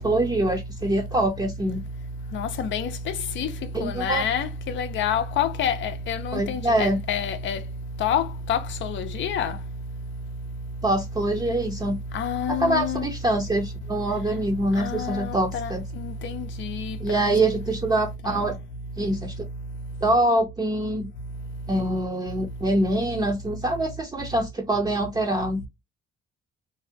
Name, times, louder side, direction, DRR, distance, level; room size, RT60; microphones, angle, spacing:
voice 1, 0.0-1.8 3.7-4.2 6.3-7.0 10.8-12.0 12.5-15.8 17.0-18.5 19.0-19.5 20.0-21.1 21.7-25.7, right 1 dB, 20° right, 0.5 m, -24 dB
voice 2, 2.3-2.9 3.4-3.5 3.8-7.6 8.0-9.5 12.1-13.1 14.8-15.7 16.0-17.3, left 7 dB, 70° left, 0.5 m, -27 dB
2.6 x 2.1 x 2.6 m
cardioid pair, 90°, 20 cm